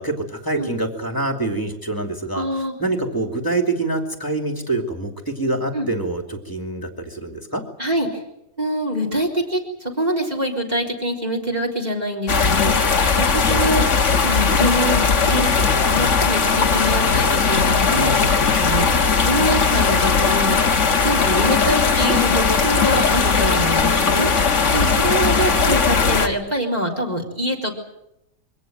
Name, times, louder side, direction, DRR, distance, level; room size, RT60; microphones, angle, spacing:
voice 1, 0.0-2.5 2.8-7.6 12.9-13.1 23.3-25.3, right 2 dB, 10° left, 4 dB, 2.7 m, -27 dB
voice 2, 2.3-2.7 5.7-5.9 7.8-8.1 8.6-13.9 14.2-15.5 15.9-18.3 18.6-18.9 19.3-20.7 21.0-24.3 24.7-27.8, equal, 25° right, 0 dB, 4.1 m, -24 dB
sound 1, 12.3-26.3, left 5 dB, 50° left, 1.7 m, -18 dB
24.0 x 17.5 x 9.2 m, 0.83 s
omnidirectional pair, 1.7 m